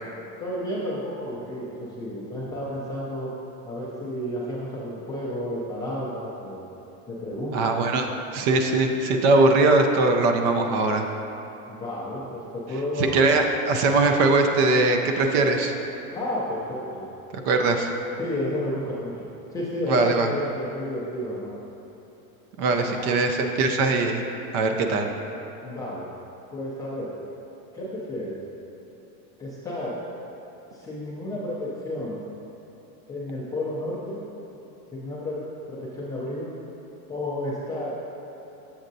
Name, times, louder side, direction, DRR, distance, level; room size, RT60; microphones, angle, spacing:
voice 1, 0.4-3.3 3.6-6.6 7.1-7.8 11.7-13.1 16.1-17.1 18.2-19.3 19.5-21.5 22.9-23.2 25.6-26.1 26.5-27.2 27.7-28.4 29.4-30.0 30.7-32.2 33.1-34.2 34.9-35.4 35.7-36.5 37.1-37.9, left 1 dB, 10° left, -9 dB, 0.3 m, -31 dB
voice 2, 7.5-8.1 8.3-11.1 13.0-15.7 17.5-17.9 19.9-20.3 22.6-24.2 24.5-25.1, right 3 dB, 45° right, 4 dB, 0.5 m, -21 dB
7.2 x 6.3 x 2.6 m, 3.0 s
supercardioid pair, 145°, 44 cm